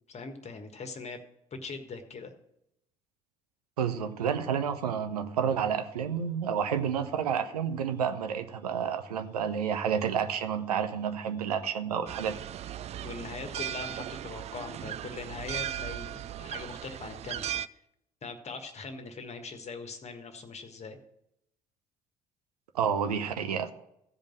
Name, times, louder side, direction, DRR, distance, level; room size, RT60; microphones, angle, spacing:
voice 1, 0.1-1.2 1.6-2.3 13.0-17.5 18.2-21.0, left 4 dB, 35° left, 1.5 m, -41 dB
voice 2, 3.8-12.4 22.7-23.7, right 7 dB, 75° right, 0.7 m, -30 dB
sound 1, 12.1-17.7, right 11 dB, 35° right, 0.4 m, -37 dB
15.0 x 5.3 x 6.2 m
figure-of-eight pair, 50°, 20 cm